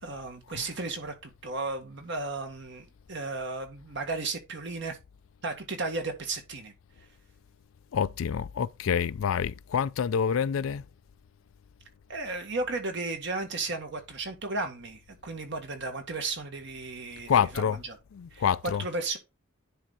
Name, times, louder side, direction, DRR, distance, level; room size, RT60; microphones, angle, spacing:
voice 1, 0.0-5.0 5.4-6.7 12.1-17.9 18.3-18.4 18.8-19.2, right 3 dB, 60° right, 1.8 m, -34 dB
voice 2, 7.9-10.9 17.3-17.8 18.1-18.9, left 7 dB, 90° left, 0.4 m, -27 dB
10.0 x 4.4 x 4.0 m
head